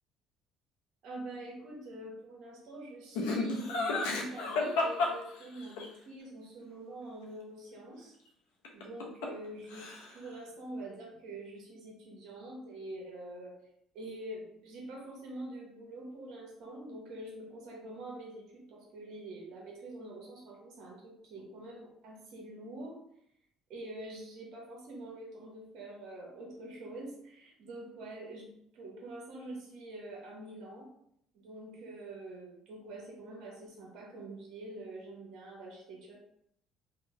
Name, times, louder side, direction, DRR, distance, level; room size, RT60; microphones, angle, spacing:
voice 1, 1.0-8.1 8.7-13.5 13.9-23.0 23.7-30.9 31.3-36.1, right 1 dB, 65° right, -2 dB, 0.8 m, -45 dB
Laughter, 3.2-5.9 8.6-9.5 9.7-10.3, left 3 dB, 85° left, 0.5 m, -32 dB
2.7 x 2.1 x 2.8 m, 0.74 s
supercardioid pair, 70°, 0 cm